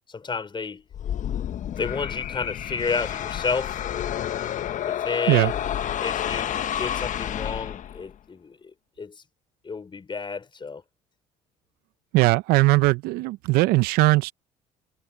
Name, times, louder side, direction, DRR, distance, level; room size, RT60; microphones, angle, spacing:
voice 1, 0.1-0.8 1.7-3.8 4.8-5.6 6.0-8.7 9.0-9.2 9.6-10.8, left 5 dB, 30° left, 4.9 m, -31 dB
sound 1, 0.9-8.1, left 10 dB, 50° left, 1.4 m, -29 dB
voice 2, 12.1-14.3, right 21 dB, 70° right, 0.8 m, -19 dB
hypercardioid pair, 65°, 16 cm